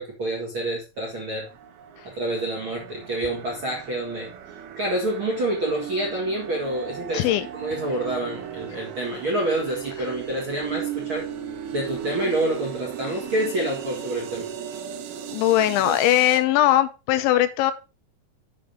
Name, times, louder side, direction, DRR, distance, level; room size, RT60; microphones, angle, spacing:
voice 1, 0.0-1.5 2.0-4.3 4.7-11.3 11.7-14.5 15.6-16.0, right 1 dB, 50° right, 1.6 m, -28 dB
sound 1, 1.5-16.4, right 9 dB, 70° right, 2.6 m, -36 dB
voice 2, 7.1-7.5 15.3-17.7, left 13 dB, 85° left, 3.2 m, -20 dB
7.7 x 6.0 x 5.1 m
omnidirectional pair, 5.2 m